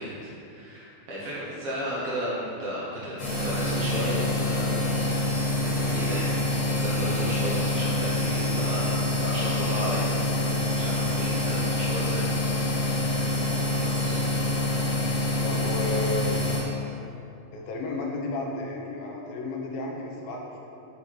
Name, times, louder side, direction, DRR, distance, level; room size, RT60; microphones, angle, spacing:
voice 1, 0.0-4.7 5.1-5.2 5.8-6.4 6.7-8.9 9.2-13.5 13.8-14.2, equal, 75° right, -8 dB, 1.3 m, -34 dB
sound 1, 3.2-16.6, left 2 dB, 50° left, 2.8 m, -26 dB
voice 2, 15.4-16.4 17.5-20.6, left 2 dB, 80° left, 0 dB, 2.5 m, -33 dB
6.8 x 6.1 x 4.2 m, 2.7 s
omnidirectional pair, 4.3 m